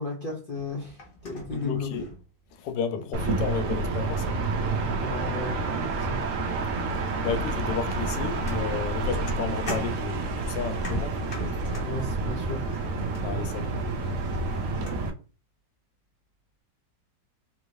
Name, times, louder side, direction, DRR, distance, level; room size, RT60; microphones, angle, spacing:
voice 1, 0.0-1.9 4.5-4.7 5.0-6.2 11.7-12.6, left 3 dB, 60° left, 0.5 m, -34 dB
sound 1, 0.5-2.8 3.3-3.7 4.8-4.9 5.4-5.6 5.9-15.1, left 1 dB, 40° left, 0.9 m, -41 dB
voice 2, 1.5-2.0 2.5-4.4 7.2-11.2 13.2-13.7, left 6 dB, 90° left, 1.2 m, -32 dB
sound 2, 3.1-15.1, right 3 dB, 65° right, 0.8 m, -29 dB
3.5 x 2.6 x 3.1 m
omnidirectional pair, 1.8 m